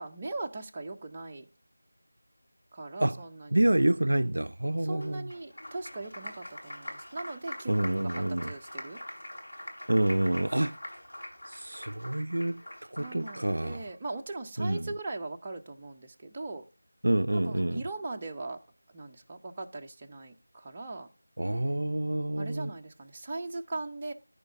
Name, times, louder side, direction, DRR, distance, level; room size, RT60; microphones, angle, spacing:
voice 1, 0.0-1.5 2.7-3.6 4.8-9.0 13.0-16.7 17.3-18.6 18.9-21.1 22.4-24.1, right 2 dB, 20° right, 0.7 m, -39 dB
voice 2, 3.5-5.3 7.7-8.5 9.9-10.8 11.5-12.6 12.9-13.8 14.6-14.9 17.0-17.8 21.4-22.7, right 1 dB, 75° right, 0.4 m, -27 dB
Applause, 5.0-13.7, left 1 dB, 85° left, 4.4 m, -43 dB
14.0 x 5.1 x 3.5 m
figure-of-eight pair, 170°, 0 cm